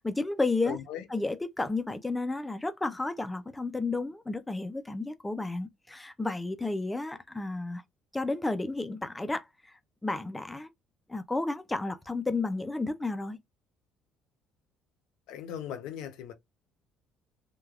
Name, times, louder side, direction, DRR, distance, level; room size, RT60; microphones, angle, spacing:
voice 1, 0.0-0.8 1.1-7.8 8.1-9.5 10.0-10.7 11.1-13.4, left 3 dB, 10° left, 0.3 m, -32 dB
voice 2, 0.7-1.0 15.3-16.3, left 9 dB, 80° left, 0.7 m, -38 dB
3.2 x 2.2 x 2.3 m
cardioid pair, 165°, 0 cm